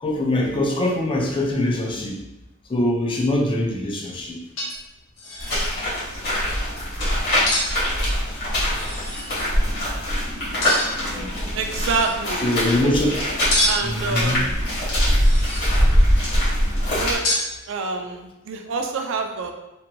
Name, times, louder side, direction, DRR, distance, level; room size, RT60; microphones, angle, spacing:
voice 1, 0.0-2.2 2.7-4.4 8.3-8.4 11.2-11.3 12.4-13.2 13.8-14.5, left 1 dB, 25° left, 1 dB, 0.3 m, -23 dB
sound 1, 4.1-4.2 4.6-4.9 5.2-5.7 7.4-7.7 8.7-9.3 10.6-11.1 11.6-12.1 13.5-14.0 15.0-15.8 17.2-17.5, left 1 dB, 70° left, 0.8 m, -26 dB
sound 2, 5.4-17.2, equal, 50° left, 1.2 m, -22 dB
voice 2, 11.5-12.5 13.7-14.6 16.9-17.3 17.7-19.5, right 4 dB, 65° right, 4 dB, 0.4 m, -27 dB
2.8 x 2.2 x 2.7 m, 0.92 s
head